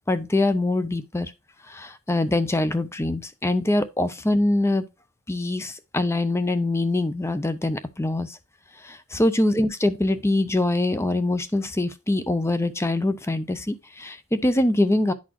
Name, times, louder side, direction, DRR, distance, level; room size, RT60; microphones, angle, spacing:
voice 1, 0.1-1.3 1.7-4.8 5.3-8.4 8.8-15.1, left 2 dB, 10° left, 0.5 m, -24 dB
11.0 x 4.1 x 2.9 m
head